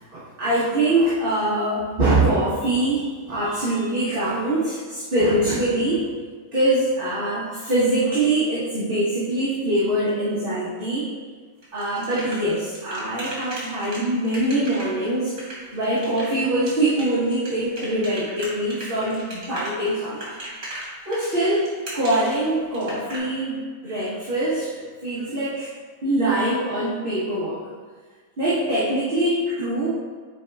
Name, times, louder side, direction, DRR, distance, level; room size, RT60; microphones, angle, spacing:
voice 1, 0.0-6.1 6.5-11.1 11.7-15.4 15.7-20.4 21.0-21.7 21.9-25.7 26.0-27.6 28.4-29.9, right 1 dB, 40° right, -10 dB, 1.5 m, -23 dB
sound 1, 11.6-23.2, right 1 dB, 80° right, 2.5 m, -36 dB
8.7 x 4.6 x 3.4 m, 1.5 s
omnidirectional pair, 1.6 m